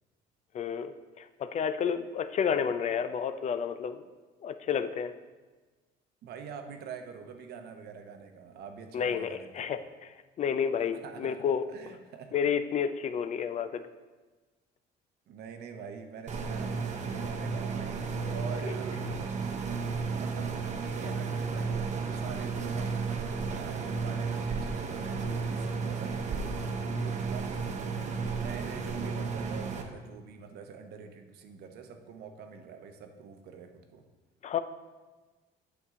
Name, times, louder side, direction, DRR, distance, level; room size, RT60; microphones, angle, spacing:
voice 1, 0.5-4.0 4.4-5.1 8.9-10.1 10.4-11.6 12.3-13.8 18.2-18.3 34.4-34.6, left 7 dB, 45° left, 11 dB, 0.4 m, -30 dB
voice 2, 6.2-9.7 10.9-12.3 15.3-19.0 20.1-34.0, right 6 dB, 70° right, 6 dB, 0.9 m, -45 dB
sound 1, 16.3-29.8, right 4 dB, 45° right, 0.9 m, -33 dB
8.3 x 6.3 x 3.7 m, 1.3 s
cardioid pair, 110°, 17 cm